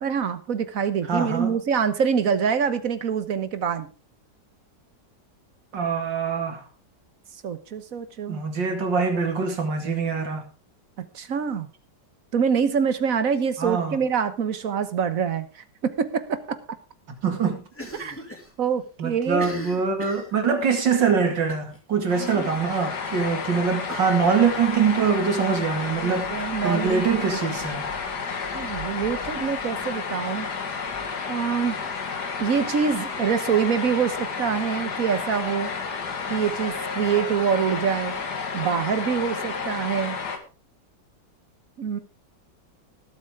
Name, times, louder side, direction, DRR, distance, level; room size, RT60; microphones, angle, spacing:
voice 1, 0.0-3.9 7.4-8.4 11.0-11.7 12.3-16.4 18.0-18.2 18.6-19.5 22.2-22.5 26.0-27.5 28.5-30.5 31.2-31.8 32.4-35.7 36.3-38.2 38.5-40.2 41.8-42.0, right 7 dB, 55° right, 1.4 m, -25 dB
voice 2, 1.1-1.6 5.7-6.6 8.3-10.5 13.6-14.0 17.2-17.6 19.0-27.9, right 5 dB, 75° right, 2.9 m, -24 dB
Cough, 17.7-18.5 18.8-18.9 19.3-20.8 21.5-21.8 22.1-22.2 22.5-22.6 23.9-25.1, left 1 dB, 5° left, 2.5 m, -40 dB
sound 1, 22.1-40.4, left 5 dB, 65° left, 2.2 m, -31 dB
19.0 x 8.2 x 3.7 m
omnidirectional pair, 2.0 m